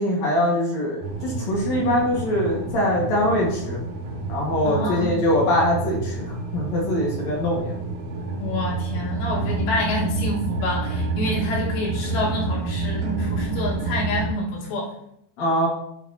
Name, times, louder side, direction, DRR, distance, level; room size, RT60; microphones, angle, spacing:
voice 1, 0.0-3.8 4.3-7.7 15.4-15.7, left 1 dB, 50° left, -4 dB, 2.6 m, -23 dB
sound 1, 1.0-14.3, right 3 dB, 70° right, 3.2 m, -29 dB
voice 2, 4.7-5.2 8.4-14.9, left 1 dB, 85° left, -4 dB, 3.9 m, -27 dB
10.0 x 7.1 x 2.9 m, 0.76 s
omnidirectional pair, 4.8 m